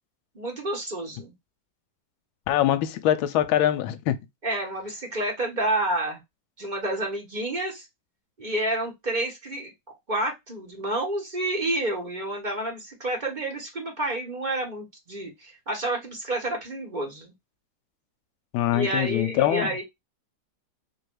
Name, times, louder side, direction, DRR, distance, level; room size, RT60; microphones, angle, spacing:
voice 1, 0.3-1.3 4.4-6.2 6.6-7.8 8.4-9.7 10.1-17.3 18.7-19.8, right 1 dB, 25° right, 1.3 m, -29 dB
voice 2, 2.5-4.2 18.5-19.8, left 12 dB, 75° left, 1.3 m, -23 dB
3.3 x 3.1 x 4.6 m
omnidirectional pair, 2.4 m